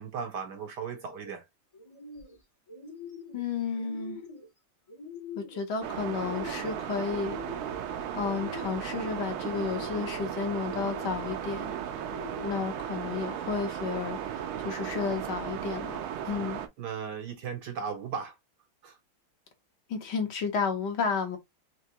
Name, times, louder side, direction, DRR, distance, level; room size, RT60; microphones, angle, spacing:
voice 1, 0.0-1.5 16.2-16.4 16.8-18.4 18.8-19.0, right 6 dB, 65° right, 1.1 m, -37 dB
sound 1, 0.8-1.3 1.7-2.4 2.7-3.4 3.8-4.5 4.9-5.6 6.0-6.8 7.1-7.8 8.2-8.9 9.4-10.2 10.7-11.4 11.9-12.7, left 4 dB, 30° left, 0.6 m, -45 dB
voice 2, 3.3-4.2 5.3-7.4 8.2-11.8 12.4-16.0 16.3-16.6 19.9-21.4, left 5 dB, 60° left, 1.4 m, -32 dB
sound 2, 5.8-16.7, right 9 dB, 80° right, 1.6 m, -36 dB
4.5 x 2.9 x 2.9 m
omnidirectional pair, 2.3 m